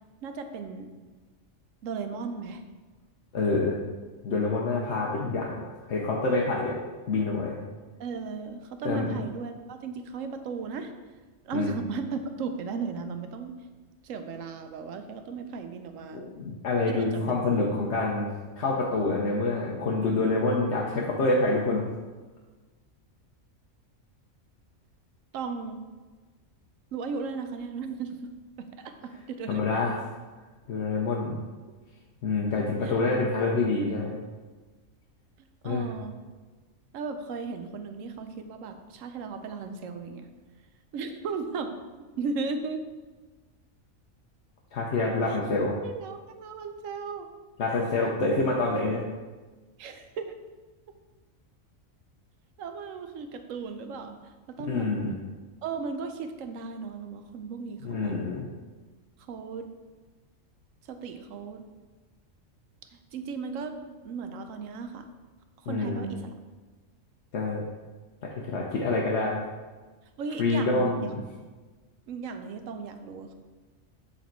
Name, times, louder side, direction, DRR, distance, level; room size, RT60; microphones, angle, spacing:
voice 1, 0.2-0.9 1.8-2.6 8.0-10.9 11.4-13.5 14.0-16.3 16.9-17.5 25.3-25.8 26.9-28.3 28.6-30.0 30.8-31.1 32.8-33.0 35.4-36.2 36.9-40.3 40.9-41.7 42.2-42.8 45.3-45.4 45.8-47.3 47.7-48.3 48.7-48.8 49.8-50.4 52.6-54.9 55.6-58.2 59.3-59.7 60.8-61.6 62.9-65.1 65.6-66.3 70.2-71.1 72.1-73.3, right 4 dB, 80° right, 7 dB, 1.0 m, -36 dB
voice 2, 3.3-3.8 4.2-5.6 5.9-6.8 7.1-7.6 8.8-9.1 11.5-11.8 16.1-18.3 18.6-21.9 29.5-30.0 30.7-31.4 32.2-34.2 35.6-35.9 44.7-45.8 47.6-49.0 54.6-55.1 57.8-58.5 65.7-66.1 67.3-67.6 68.2-69.4 70.4-71.1, left 3 dB, 60° left, -3 dB, 1.0 m, -27 dB
7.6 x 4.2 x 4.5 m, 1.3 s
omnidirectional pair, 1.4 m